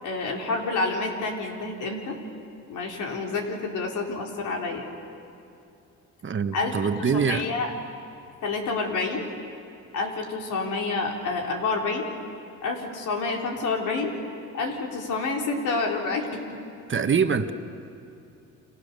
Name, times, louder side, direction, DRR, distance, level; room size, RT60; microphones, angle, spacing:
voice 1, 0.0-2.2 2.7-4.8 6.5-6.7 7.0-7.7 8.4-9.2 9.9-12.1 12.6-14.1 14.5-16.6, left 3 dB, 80° left, 1 dB, 4.2 m, -28 dB
voice 2, 6.2-7.5 16.9-17.5, right 6 dB, 40° right, 8 dB, 1.4 m, -24 dB
30.0 x 26.0 x 6.9 m, 2.7 s
cardioid pair, 90°, 30 cm